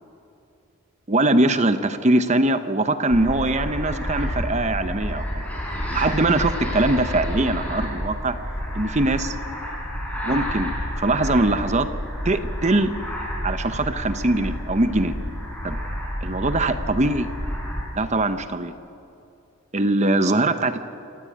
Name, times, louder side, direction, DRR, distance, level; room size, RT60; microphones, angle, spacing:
voice 1, 1.1-5.4 5.9-8.4 8.7-9.3 10.2-11.9 12.2-12.9 13.4-15.1 15.6-15.8 16.2-17.3 17.9-18.7 19.7-20.9, right 2 dB, 30° right, 10 dB, 0.9 m, -22 dB
sound 1, 3.1-17.8, equal, 5° left, 5.0 m, -29 dB
27.0 x 14.5 x 8.7 m, 2.7 s
head